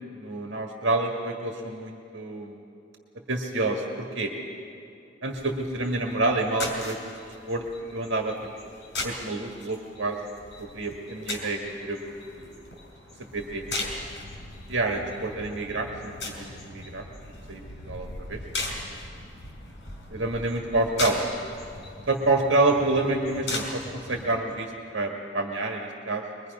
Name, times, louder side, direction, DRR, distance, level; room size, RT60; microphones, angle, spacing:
voice 1, 0.0-2.5 3.3-4.3 5.2-7.0 7.5-7.6 7.9-8.3 9.0-10.2 10.6-12.0 12.3-12.6 13.3-13.6 14.7-17.0 17.5-17.6 17.9-18.4 18.9-19.0 20.1-21.2 22.1-26.2, right 2 dB, 85° right, 1 dB, 1.7 m, -28 dB
sound 1, 5.3-24.4, left 2 dB, 70° left, 4.6 m, -38 dB
23.5 x 21.5 x 5.4 m, 2.6 s
head